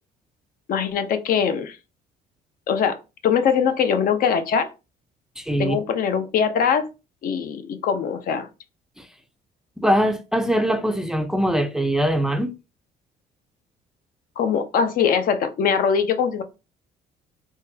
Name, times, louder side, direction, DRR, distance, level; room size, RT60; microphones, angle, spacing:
voice 1, 0.7-1.8 2.7-3.0 3.2-4.7 5.6-6.9 7.2-8.5 14.4-16.4, left 7 dB, 60° left, 0.6 m, -22 dB
voice 2, 5.4-5.8 9.0-9.1 9.8-12.5, equal, 5° right, 0.4 m, -22 dB
3.6 x 2.2 x 2.7 m
cardioid pair, 110°, 17 cm